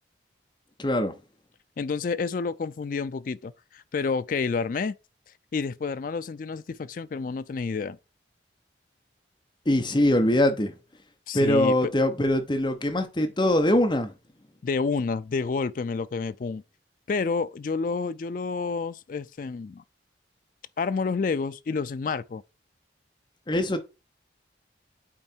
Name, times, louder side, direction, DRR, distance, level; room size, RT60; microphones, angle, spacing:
voice 1, 0.8-1.1 9.7-10.7 11.3-14.1 23.5-23.8, left 1 dB, 25° left, 0.8 m, -22 dB
voice 2, 1.8-5.0 5.5-8.0 11.3-11.9 14.6-16.6 17.1-19.8 20.8-22.4, left 4 dB, 45° left, 0.3 m, -29 dB
8.6 x 3.2 x 4.4 m
head